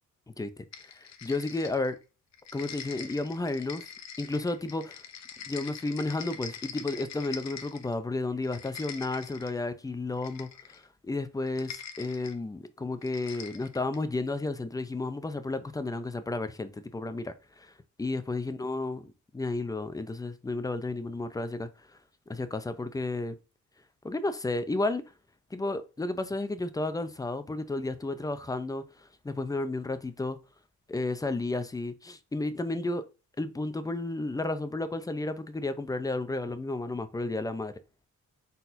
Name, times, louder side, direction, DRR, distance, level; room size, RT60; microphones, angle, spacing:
sound 1, 0.7-2.0 2.3-7.9 8.3-9.6 10.2-10.8 11.5-12.4 13.0-14.1, left 8 dB, 55° left, 0.7 m, -44 dB
voice 1, 0.9-2.0 2.5-3.9 4.2-5.0 5.5-17.7 18.0-21.7 22.3-23.4 24.0-25.0 25.5-28.8 29.2-30.4 30.9-33.0 33.4-37.7, left 2 dB, 10° left, 0.5 m, -32 dB
4.2 x 4.0 x 2.5 m
cardioid pair, 105°, 32 cm